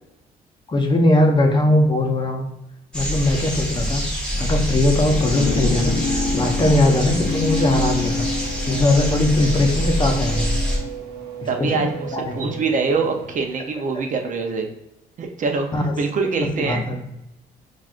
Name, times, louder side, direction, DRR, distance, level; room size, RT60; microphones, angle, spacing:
voice 1, 0.7-2.5 2.9-4.0 4.4-8.3 8.6-10.5 11.6-12.5 15.7-15.9 16.6-17.0, left 1 dB, 25° left, 3 dB, 0.7 m, -20 dB
sound 1, 2.9-10.8, equal, 5° left, 1.1 m, -25 dB
sound 2, 4.3-10.9, left 3 dB, 70° left, 0.7 m, -28 dB
Race car auto racing / Accelerating revving vroom, 6.6-13.9, right 6 dB, 80° right, 0.9 m, -37 dB
voice 2, 11.5-14.7 15.2-16.8, right 4 dB, 50° right, 4 dB, 0.6 m, -24 dB
5.8 x 2.4 x 2.4 m, 0.90 s
cardioid pair, 105°, 17 cm